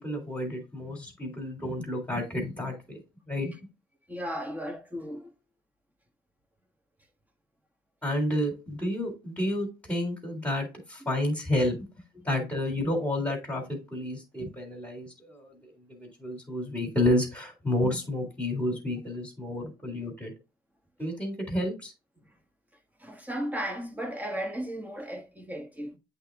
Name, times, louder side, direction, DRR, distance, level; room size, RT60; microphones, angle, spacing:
voice 1, 0.0-3.0 3.3-3.5 8.0-11.8 12.2-20.3 21.0-21.9, left 1 dB, 10° left, 2.3 m, -30 dB
voice 2, 4.1-5.3 12.2-12.3 22.2-22.3 23.0-26.0, equal, 10° right, 1.4 m, -35 dB
8.0 x 3.6 x 3.5 m
cardioid pair, 110°, 17 cm